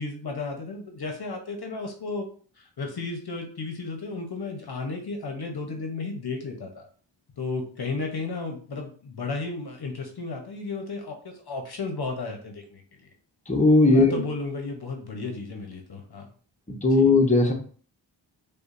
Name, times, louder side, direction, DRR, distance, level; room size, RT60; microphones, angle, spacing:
voice 1, 0.0-2.3 2.6-6.9 7.4-13.1 13.8-16.3 16.9-17.1, left 3 dB, 55° left, 3 dB, 0.8 m, -34 dB
voice 2, 13.5-14.2 16.8-17.5, left 3 dB, 15° left, 1 dB, 0.9 m, -18 dB
5.0 x 2.3 x 2.5 m, 0.44 s
cardioid pair, 45°, 46 cm